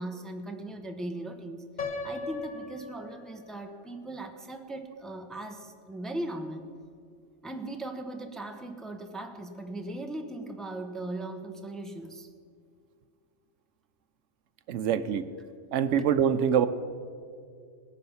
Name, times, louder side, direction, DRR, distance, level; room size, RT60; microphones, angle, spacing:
voice 1, 0.0-1.6 2.0-6.7 7.4-12.3 14.9-15.1, right 1 dB, ahead, 5 dB, 1.0 m, -38 dB
Piano, 1.8-3.8, left 4 dB, 40° left, 1.8 m, -38 dB
voice 2, 14.7-15.2 15.7-16.7, right 8 dB, 85° right, 10 dB, 1.0 m, -24 dB
18.5 x 10.0 x 7.1 m, 2.2 s
omnidirectional pair, 1.2 m